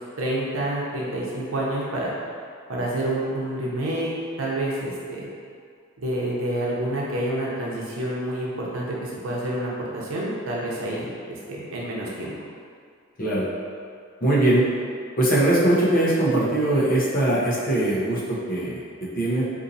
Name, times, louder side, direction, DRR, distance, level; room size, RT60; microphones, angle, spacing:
voice 1, 0.2-2.1 2.7-4.1 4.4-5.3 6.0-12.3, right 1 dB, 80° right, -4 dB, 0.7 m, -28 dB
voice 2, 13.2-13.5 14.2-14.6 15.2-19.4, right 1 dB, 45° left, -6 dB, 0.7 m, -21 dB
3.9 x 2.7 x 2.7 m, 2.2 s
head